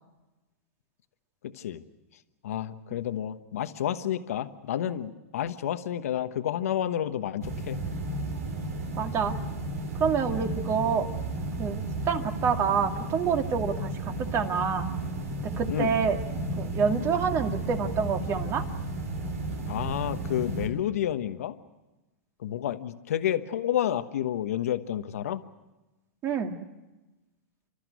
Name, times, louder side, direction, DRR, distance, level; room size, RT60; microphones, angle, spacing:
voice 1, 1.4-1.8 2.4-7.8 15.7-16.0 19.7-21.6 22.4-25.4, left 10 dB, 75° left, 10 dB, 1.1 m, -30 dB
sound 1, 7.4-20.7, right 2 dB, 80° right, 5.2 m, -33 dB
voice 2, 9.0-9.3 10.0-11.1 11.6-14.9 15.4-16.2 16.6-18.6 26.2-26.6, right 6 dB, 30° right, 5 dB, 2.3 m, -27 dB
30.0 x 13.5 x 9.4 m, 1.1 s
hypercardioid pair, 120°, 8 cm